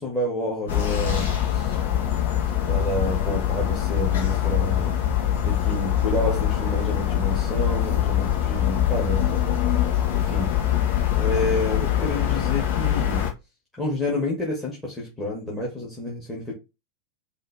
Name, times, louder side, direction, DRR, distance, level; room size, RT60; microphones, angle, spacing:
voice 1, 0.0-1.8 2.7-4.9 5.4-9.3 10.1-10.6 11.1-13.3 13.8-16.6, left 1 dB, 10° left, 1.9 m, -29 dB
sound 1, 0.7-13.3, left 11 dB, 55° left, 1.5 m, -23 dB
5.4 x 2.9 x 3.4 m
figure-of-eight pair, 90°, 0 cm